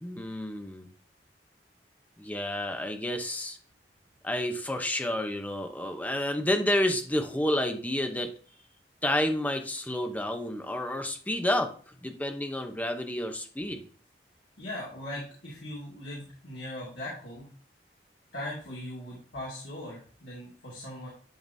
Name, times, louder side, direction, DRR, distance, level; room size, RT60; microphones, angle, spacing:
voice 1, 0.0-0.9 2.2-3.6 4.2-8.3 9.0-11.7 12.0-13.9, left 1 dB, 10° left, 5 dB, 0.7 m, -30 dB
voice 2, 14.6-17.4 18.3-21.1, left 1 dB, 75° left, -6 dB, 2.1 m, -39 dB
10.5 x 3.9 x 2.7 m, 0.44 s
head